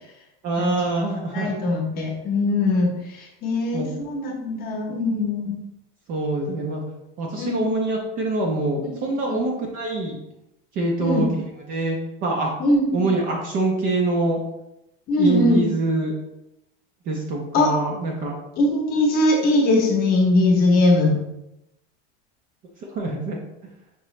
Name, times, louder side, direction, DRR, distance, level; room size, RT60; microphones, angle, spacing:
voice 1, 0.4-1.8 3.7-3.9 6.1-6.8 7.2-10.2 10.7-11.4 11.7-12.5 12.9-14.4 15.2-16.1 17.1-18.3 22.9-23.4, right 2 dB, 25° right, 0 dB, 0.5 m, -25 dB
voice 2, 1.3-5.6 7.4-7.6 8.8-8.9 9.3-9.4 11.0-11.3 12.6-13.1 15.1-15.6 17.5-17.7 18.6-21.2, left 2 dB, 30° left, 0 dB, 0.9 m, -21 dB
5.7 x 3.0 x 3.1 m, 0.88 s
supercardioid pair, 170°, 32 cm